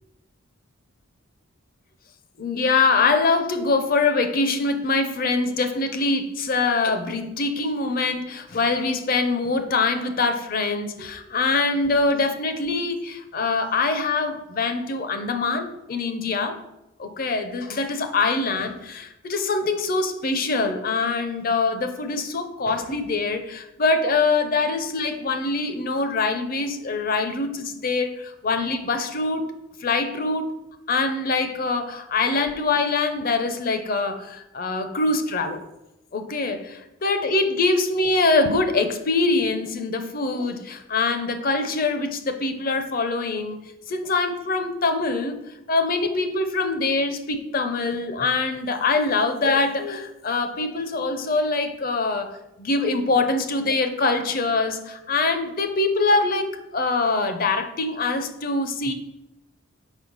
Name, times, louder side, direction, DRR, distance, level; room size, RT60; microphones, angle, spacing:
voice 1, 2.4-16.6 17.0-29.5 29.8-30.5 30.9-35.6 36.1-43.6 43.9-45.4 45.7-52.3 52.6-58.9, left 3 dB, 45° left, 7 dB, 0.6 m, -24 dB
6.2 x 5.5 x 4.0 m, 0.92 s
head